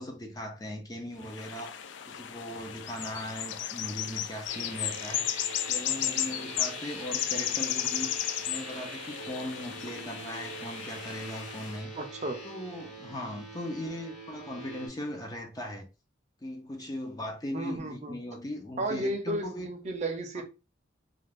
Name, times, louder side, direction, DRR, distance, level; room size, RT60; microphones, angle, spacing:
voice 1, 0.0-1.7 2.1-11.9 12.4-15.9 16.4-19.7 20.4-20.5, left 1 dB, 20° left, 0.5 m, -39 dB
sound 1, 1.2-11.8, left 11 dB, 75° left, 0.3 m, -34 dB
sound 2, 4.5-14.9, equal, 35° left, 1.1 m, -43 dB
voice 2, 11.9-12.4 17.5-18.2 18.8-20.4, right 1 dB, 35° right, 0.5 m, -33 dB
2.4 x 2.4 x 3.3 m
head